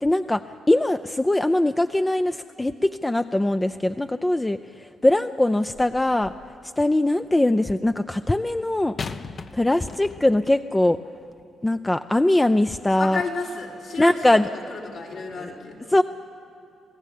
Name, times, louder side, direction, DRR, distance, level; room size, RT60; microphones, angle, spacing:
voice 1, 0.0-6.3 6.8-8.9 9.5-11.0 11.6-13.2 14.0-14.4 15.9-16.0, left 1 dB, 15° left, 9 dB, 0.5 m, -21 dB
sound 1, 5.7-6.6 9.0-10.5 11.3-11.4, left 4 dB, 45° left, 0.9 m, -37 dB
voice 2, 13.0-14.4 14.7-15.9, left 4 dB, 70° left, -3 dB, 5.0 m, -32 dB
27.0 x 17.0 x 8.4 m, 2.9 s
cardioid pair, 80°, 0 cm